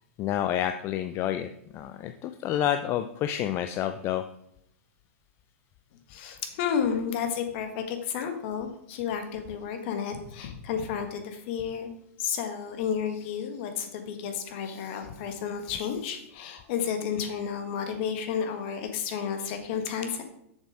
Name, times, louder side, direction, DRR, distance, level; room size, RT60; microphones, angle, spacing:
voice 1, 0.2-1.5 1.7-4.2 13.1-13.4 14.6-15.1 15.7-16.1, left 11 dB, 35° left, 8 dB, 0.5 m, -30 dB
voice 2, 6.1-11.9 12.2-20.2, left 7 dB, 50° left, 6 dB, 1.6 m, -31 dB
7.0 x 6.6 x 4.7 m, 0.76 s
hypercardioid pair, 120°, 8 cm